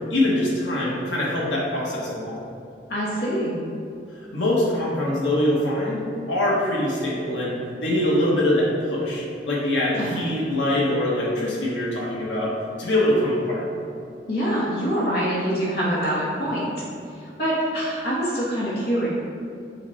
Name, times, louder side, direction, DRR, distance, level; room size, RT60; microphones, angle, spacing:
voice 1, 0.1-2.4 4.1-12.5 12.8-13.7, left 1 dB, 80° left, -5 dB, 1.1 m, -23 dB
voice 2, 2.9-3.6 10.0-10.2 14.3-16.7 17.2-19.1, equal, 55° left, -8 dB, 0.8 m, -25 dB
5.8 x 2.2 x 4.0 m, 2.5 s
head